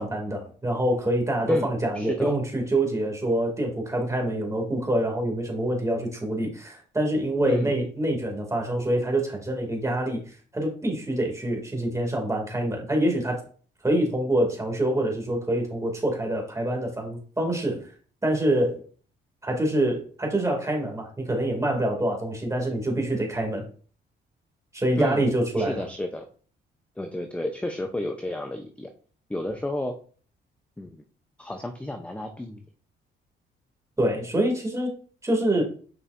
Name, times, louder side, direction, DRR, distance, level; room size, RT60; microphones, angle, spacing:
voice 1, 0.0-13.4 13.8-17.9 18.2-18.8 19.4-23.7 24.7-25.8 34.0-34.9 35.2-35.6, right 1 dB, 15° right, 1 dB, 2.3 m, -26 dB
voice 2, 1.5-2.4 7.5-7.7 24.9-25.3 25.6-26.3 27.0-28.9 29.3-30.0 30.8-31.0 31.4-32.6, left 1 dB, 5° left, 5 dB, 0.6 m, -32 dB
6.7 x 5.4 x 2.5 m, 0.43 s
cardioid pair, 90°, 20 cm